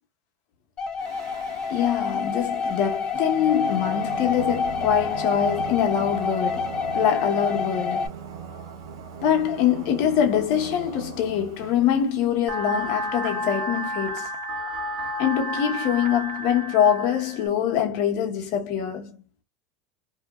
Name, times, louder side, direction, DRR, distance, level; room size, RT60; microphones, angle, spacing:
sound 1, 0.8-8.1, left 5 dB, 35° left, 0.7 m, -28 dB
Singing, 1.0-12.3, right 7 dB, 80° right, 0.8 m, -39 dB
voice 1, 1.7-8.1 9.2-14.3 15.2-19.2, left 9 dB, 60° left, 1.1 m, -24 dB
sound 2, 12.5-17.5, equal, 40° right, 1.2 m, -31 dB
2.9 x 2.7 x 2.4 m
hypercardioid pair, 100°, 2 cm